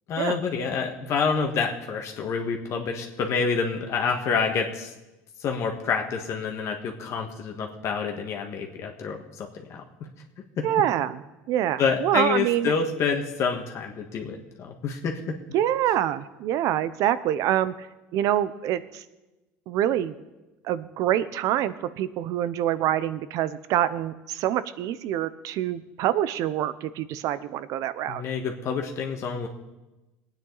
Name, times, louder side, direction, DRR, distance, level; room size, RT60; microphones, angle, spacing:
voice 1, 0.1-4.9 5.4-9.8 10.6-10.7 11.8-15.4 28.1-29.5, left 5 dB, 50° left, 2 dB, 1.6 m, -28 dB
voice 2, 10.6-12.7 15.5-17.9 18.1-19.0 19.7-20.2 20.6-28.2, right 11 dB, 65° right, 15 dB, 0.8 m, -26 dB
20.0 x 9.2 x 4.0 m, 1.1 s
supercardioid pair, 110°, 6 cm